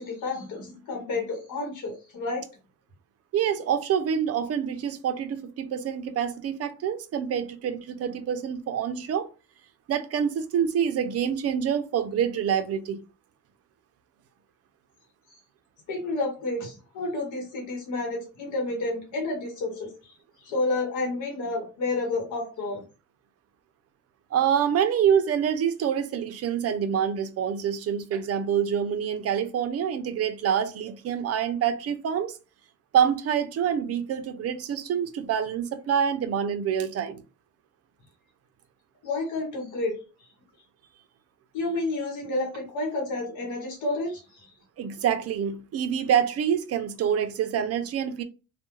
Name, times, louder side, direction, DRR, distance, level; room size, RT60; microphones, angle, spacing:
voice 1, 0.0-2.4 15.9-20.1 20.4-22.8 39.0-39.9 41.5-44.2, left 2 dB, 85° left, 1.0 m, -30 dB
voice 2, 3.3-9.3 9.9-13.0 24.3-32.4 32.9-37.2 44.8-48.2, right 8 dB, 55° right, 0.4 m, -26 dB
2.3 x 2.1 x 2.9 m
cardioid pair, 90°, 30 cm